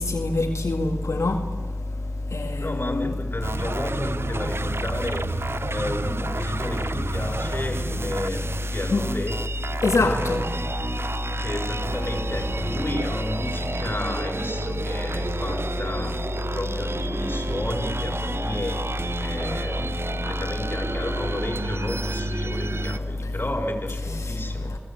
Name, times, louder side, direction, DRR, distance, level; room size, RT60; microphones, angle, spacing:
voice 1, 0.0-1.4 2.3-2.5 2.9-3.1 8.9-9.0 9.8-10.4, left 3 dB, 85° left, 1 dB, 2.0 m, -23 dB
voice 2, 2.6-5.4 5.7-9.5 10.0-10.8 11.4-18.9 19.2-24.7, left 1 dB, 45° left, 2 dB, 4.7 m, -32 dB
sound 1, 3.4-23.0, right 3 dB, 55° right, 0.8 m, -31 dB
28.0 x 18.5 x 8.6 m, 1.4 s
cardioid pair, 45°, 5 cm